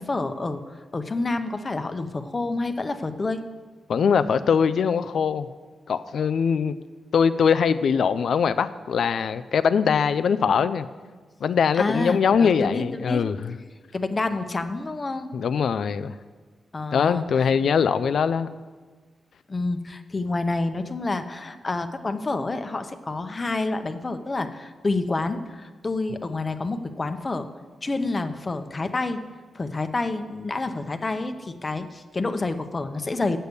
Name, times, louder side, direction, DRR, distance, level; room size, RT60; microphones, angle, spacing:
voice 1, 0.0-3.4 11.7-13.2 13.9-15.3 16.7-17.5 19.5-27.5 27.8-29.2 29.5-33.4, left 3 dB, 40° left, 8 dB, 0.8 m, -28 dB
voice 2, 3.9-5.5 5.9-6.8 7.1-10.9 11.4-13.6 15.3-16.1 16.9-18.5, left 6 dB, 75° left, 13 dB, 0.3 m, -22 dB
8.1 x 6.6 x 6.8 m, 1.4 s
cardioid pair, 55°, 0 cm